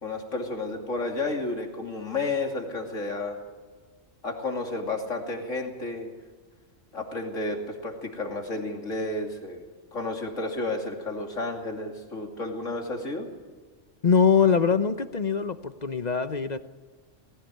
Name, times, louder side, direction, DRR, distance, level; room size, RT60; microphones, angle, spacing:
voice 1, 0.0-3.4 4.2-6.1 6.9-9.6 9.9-13.3, left 2 dB, 85° left, 2 dB, 3.1 m, -31 dB
voice 2, 14.0-16.6, left 6 dB, 40° left, 11 dB, 0.9 m, -22 dB
19.5 x 16.0 x 9.1 m, 1.4 s
omnidirectional pair, 1.3 m